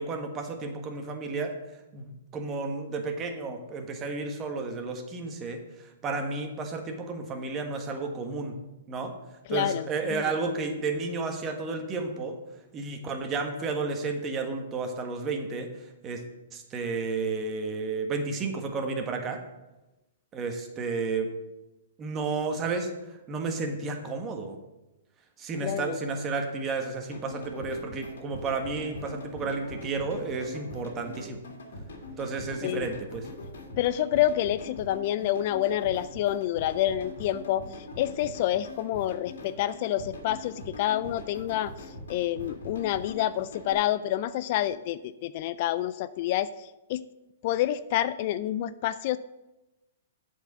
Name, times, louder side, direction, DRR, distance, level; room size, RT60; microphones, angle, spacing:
voice 1, 0.0-1.5 1.9-5.6 6.0-8.5 8.9-9.1 9.5-12.3 12.7-15.7 16.0-16.2 16.5-19.4 20.3-21.3 22.0-22.9 23.3-24.5 25.4-31.4 32.2-33.3, right 4 dB, 20° right, 4 dB, 1.3 m, -32 dB
voice 2, 9.5-10.2 25.6-26.0 32.6-32.9 33.8-37.7 38.0-41.7 42.1-47.0 47.4-49.2, left 12 dB, 45° left, 15 dB, 0.3 m, -28 dB
sound 1, 27.1-43.7, left 2 dB, 75° left, 1.9 m, -43 dB
7.8 x 4.6 x 7.3 m, 1.0 s
hypercardioid pair, 140°, 0 cm